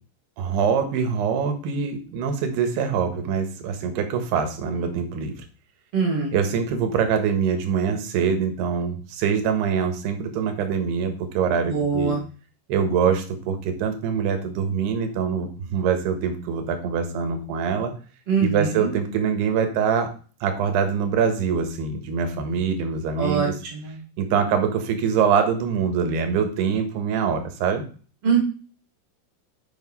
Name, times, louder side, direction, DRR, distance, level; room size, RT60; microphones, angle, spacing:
voice 1, 0.4-5.3 6.3-12.2 12.7-17.9 18.4-20.1 20.4-23.5 24.2-27.8, right 6 dB, 70° right, 6 dB, 2.8 m, -24 dB
voice 2, 5.9-6.3 11.7-12.2 18.3-18.9 23.2-24.0 28.2-28.4, right 5 dB, 50° right, 1 dB, 2.0 m, -23 dB
8.1 x 5.8 x 5.5 m, 0.39 s
omnidirectional pair, 6.0 m